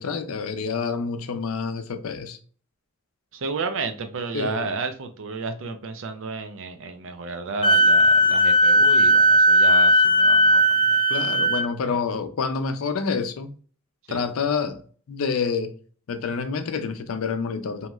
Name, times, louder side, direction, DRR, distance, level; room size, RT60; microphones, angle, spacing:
voice 1, 0.0-2.4 4.3-4.8 11.1-13.5 14.1-14.8 15.1-15.7 16.1-17.9, left 5 dB, 75° left, 0.4 m, -28 dB
voice 2, 3.3-11.0 11.9-12.0 14.1-14.2, right 4 dB, 65° right, 0.5 m, -32 dB
Wind instrument woodwind instrument, 7.6-11.7, equal, 25° left, 0.6 m, -17 dB
3.0 x 2.8 x 2.2 m
head